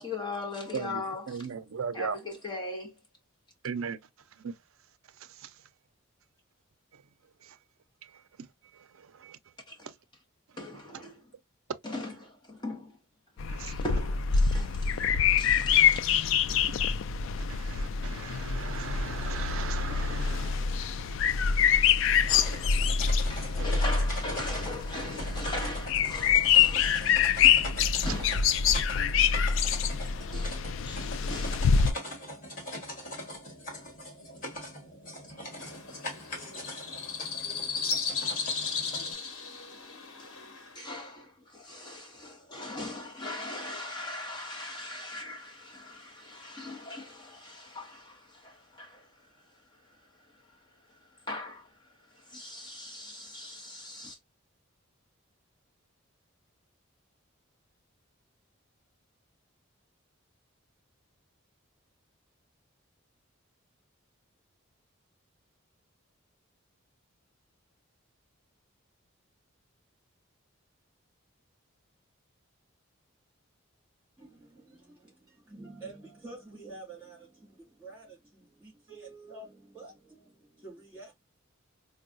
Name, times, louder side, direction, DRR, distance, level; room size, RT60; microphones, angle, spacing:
voice 1, 0.0-1.5 1.9-3.0 9.7-9.9 10.6-11.3 11.8-13.0 13.6-14.9 15.4-16.9 17.4-17.5 22.3-22.8 23.3-27.3 28.0-28.4 30.0-31.7 32.1-32.2 32.6-32.7 38.1-38.2 40.2-40.3 40.7-54.2, left 2 dB, 20° left, 0.7 m, -40 dB
voice 2, 0.7-2.2 3.6-4.0 4.4-4.5 5.4-5.5 7.4-7.6 8.0-8.1 8.7-9.4 13.5-13.7 15.6-15.7 16.9-17.0 17.5-20.9 23.6-23.7, right 6 dB, 75° right, 0.4 m, -38 dB
sound 1, 13.4-31.9, left 7 dB, 65° left, 0.3 m, -26 dB
sound 2, 22.1-39.1, left 1 dB, 40° left, 1.5 m, -42 dB
sound 3, 35.6-40.8, left 5 dB, 90° left, 1.0 m, -35 dB
voice 3, 74.2-81.1, right 3 dB, 5° right, 2.5 m, -48 dB
4.6 x 2.2 x 2.5 m
head